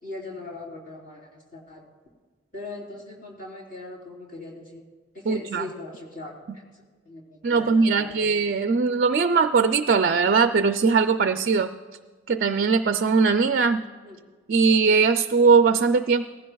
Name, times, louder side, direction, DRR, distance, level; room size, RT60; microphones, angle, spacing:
voice 1, 0.0-1.9 2.5-4.9 5.1-6.6 7.1-8.3 14.0-14.2, left 2 dB, 40° left, -4 dB, 3.8 m, -40 dB
voice 2, 5.3-5.7 7.4-11.7 12.3-13.8 14.5-16.2, right 5 dB, 50° right, 8 dB, 0.4 m, -20 dB
18.5 x 15.5 x 2.3 m, 1.4 s
head